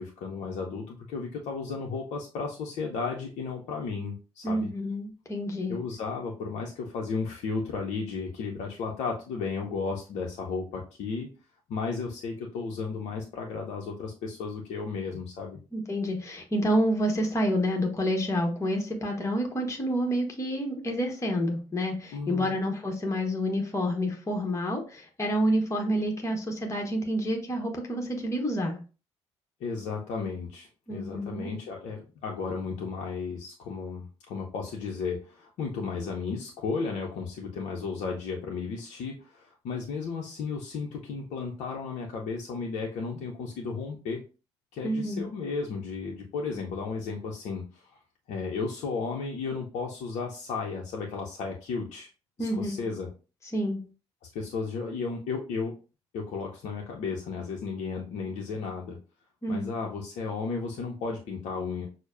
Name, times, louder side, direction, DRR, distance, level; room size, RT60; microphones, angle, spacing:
voice 1, 0.0-4.7 5.7-11.3 11.7-15.6 22.1-22.6 29.6-44.2 44.7-48.0 48.3-52.1 52.4-53.1 54.3-55.8 56.1-59.0 59.5-61.9, left 4 dB, 55° left, -1 dB, 0.6 m, -34 dB
voice 2, 4.4-5.8 15.7-28.8 30.9-31.5 44.8-45.3 52.4-52.8 53.5-53.8 59.4-59.7, equal, 20° left, 1 dB, 1.0 m, -28 dB
6.2 x 2.1 x 2.5 m, 0.34 s
figure-of-eight pair, 45°, 15 cm